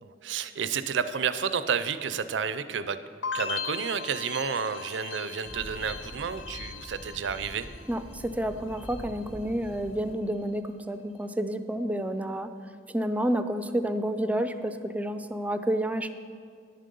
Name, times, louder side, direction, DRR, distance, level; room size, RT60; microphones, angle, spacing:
voice 1, 0.0-3.0 3.3-7.7, right 6 dB, 70° right, 12 dB, 0.5 m, -31 dB
sound 1, 3.2-8.3 8.5-9.2, left 6 dB, 85° left, 0.7 m, -39 dB
sound 2, 5.4-10.1, equal, 30° left, 1.0 m, -45 dB
voice 2, 7.9-12.5 12.9-16.1, right 1 dB, 10° right, 10 dB, 0.4 m, -29 dB
11.0 x 7.5 x 5.3 m, 2.3 s
head